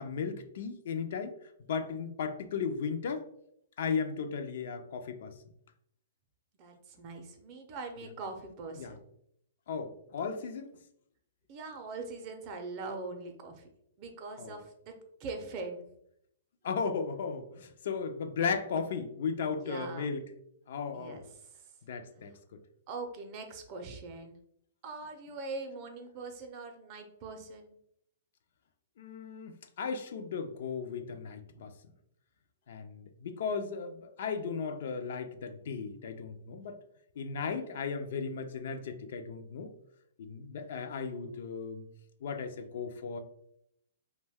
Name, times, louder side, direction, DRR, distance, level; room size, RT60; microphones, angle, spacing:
voice 1, 0.0-1.3 1.7-3.3 3.8-5.3 8.8-9.0 9.7-10.7 14.4-14.6 16.6-20.2 20.7-21.2 21.9-22.6 29.0-31.7 32.7-36.8 37.2-39.7 40.2-41.8 42.2-43.2, left 5 dB, 60° left, 8 dB, 0.4 m, -36 dB
voice 2, 6.6-9.0 11.5-13.6 14.0-14.9 15.2-15.8 19.6-20.1 20.9-21.2 22.9-24.4 24.8-27.7, right 3 dB, 35° right, 4 dB, 0.5 m, -42 dB
2.5 x 2.2 x 3.4 m, 0.73 s
hypercardioid pair, 145°, 0 cm